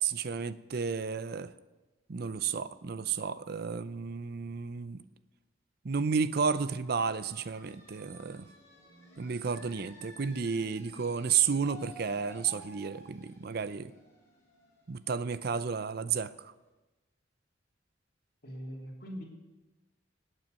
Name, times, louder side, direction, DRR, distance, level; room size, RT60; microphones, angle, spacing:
voice 1, 0.0-1.5 2.1-5.0 5.8-8.5 9.2-13.9 14.9-16.5, right 6 dB, 55° right, 15 dB, 0.5 m, -32 dB
sound 1, 6.8-16.2, equal, 15° left, 4.9 m, -54 dB
voice 2, 18.4-19.2, equal, 50° left, -2 dB, 3.0 m, -41 dB
17.5 x 9.1 x 5.4 m, 1.1 s
head